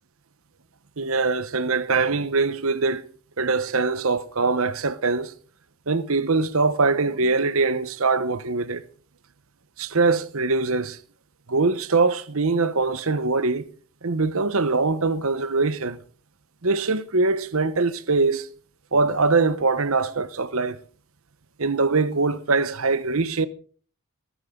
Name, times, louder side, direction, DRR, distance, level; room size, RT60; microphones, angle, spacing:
voice 1, 1.0-3.1 3.4-5.3 5.9-8.8 9.8-11.0 11.5-13.7 14.0-16.0 16.6-18.5 18.9-20.8 21.6-23.5, right 3 dB, 70° right, 1.0 m, -22 dB
20.0 x 12.5 x 3.8 m
head